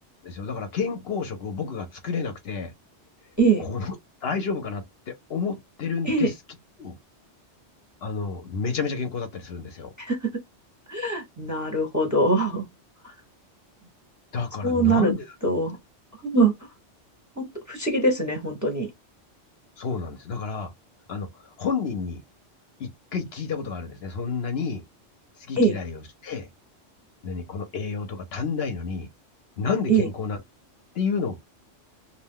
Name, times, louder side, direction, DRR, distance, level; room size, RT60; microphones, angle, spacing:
voice 1, 0.2-2.7 3.6-6.3 6.8-7.0 8.0-9.9 14.3-15.3 19.8-20.7 21.1-22.2 22.8-24.8 25.4-26.5 27.2-29.1 29.6-30.4 30.9-31.4, left 5 dB, 65° left, 0.8 m, -30 dB
voice 2, 3.4-3.7 6.1-6.3 10.0-10.2 10.9-12.7 14.6-15.1 15.4-15.8 16.2-16.5 17.4-18.9 25.6-25.8 29.9-30.1, right 3 dB, 15° right, 0.8 m, -22 dB
2.5 x 2.1 x 3.5 m
omnidirectional pair, 1.2 m